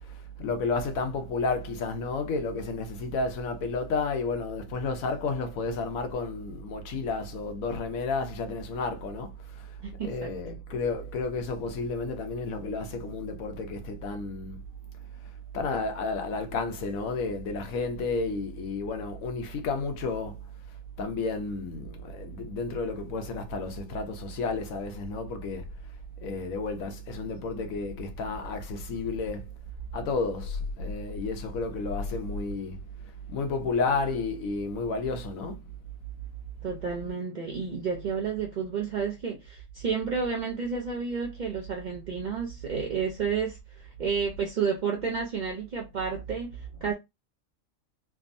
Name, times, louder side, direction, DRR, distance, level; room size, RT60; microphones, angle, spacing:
voice 1, 0.0-9.7 10.0-14.6 15.5-20.4 21.0-25.7 26.2-29.5 29.9-32.8 33.3-35.6 46.7-46.9, left 3 dB, 80° left, 1.1 m, -31 dB
voice 2, 9.8-10.3 36.6-46.9, right 6 dB, 70° right, 0.4 m, -31 dB
3.4 x 2.0 x 2.5 m
omnidirectional pair, 1.4 m